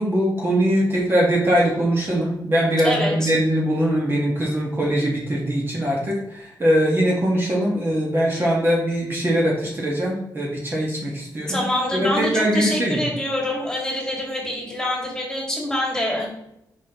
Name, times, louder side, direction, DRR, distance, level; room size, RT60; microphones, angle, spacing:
voice 1, 0.0-11.6 11.9-13.0, equal, 30° right, -3 dB, 1.6 m, -21 dB
voice 2, 2.8-3.3 11.5-16.3, left 1 dB, 10° left, -2 dB, 2.2 m, -25 dB
6.1 x 5.8 x 3.0 m, 0.81 s
wide cardioid pair, 115°, 8 cm